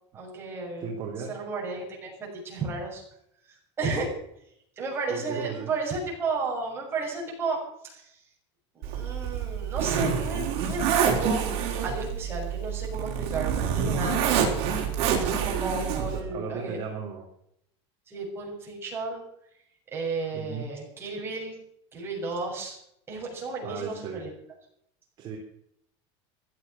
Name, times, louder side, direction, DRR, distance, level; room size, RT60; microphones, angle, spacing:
voice 1, 0.1-0.9 1.3-2.1 2.4-3.0 3.8-4.1 4.8-7.6 7.8-8.1 8.8-11.4 11.8-14.6 15.1-16.8 18.1-19.2 19.9-21.5 21.9-22.8 23.1-24.3, right 3 dB, 15° right, -2 dB, 7.0 m, -33 dB
voice 2, 0.8-1.4 5.1-5.7 16.0-17.2 20.3-20.7 23.6-24.3 25.2-25.4, right 6 dB, 30° right, -2 dB, 3.6 m, -36 dB
Zipper (clothing), 8.8-16.2, right 7 dB, 45° right, 5.2 m, -27 dB
16.0 x 13.0 x 6.0 m, 0.73 s
cardioid pair, 170°, 14 cm